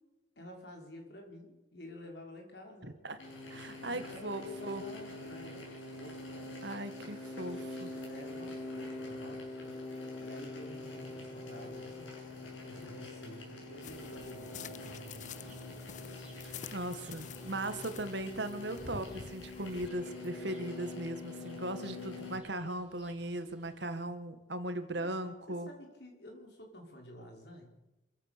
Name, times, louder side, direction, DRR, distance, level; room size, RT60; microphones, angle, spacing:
voice 1, 0.4-3.0 3.9-6.9 7.9-12.4 12.6-15.8 25.0-25.2 25.5-27.6, left 1 dB, 60° left, 2 dB, 5.5 m, -51 dB
voice 2, 2.8-3.2 3.5-4.8 6.6-7.9 16.4-25.7, right 1 dB, 65° right, 10 dB, 1.9 m, -38 dB
sound 1, 3.2-22.4, left 2 dB, 90° left, 7.4 m, -45 dB
sound 2, 13.8-19.9, left 6 dB, 40° left, 0.7 m, -49 dB
sound 3, 15.3-24.0, right 1 dB, 5° right, 7.7 m, -63 dB
26.5 x 15.0 x 6.9 m, 1.0 s
head